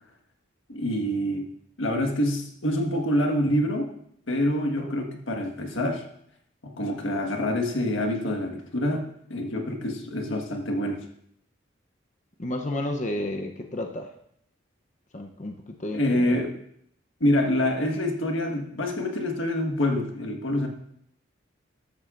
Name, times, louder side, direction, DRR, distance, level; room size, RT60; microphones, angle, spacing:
voice 1, 0.7-1.5 1.8-3.9 4.3-6.0 6.6-11.0 15.9-16.5 17.2-20.7, left 1 dB, 85° left, 3 dB, 1.6 m, -26 dB
voice 2, 12.4-14.1 15.1-16.4, left 1 dB, 40° left, 3 dB, 0.8 m, -32 dB
13.5 x 12.0 x 2.6 m, 0.71 s
head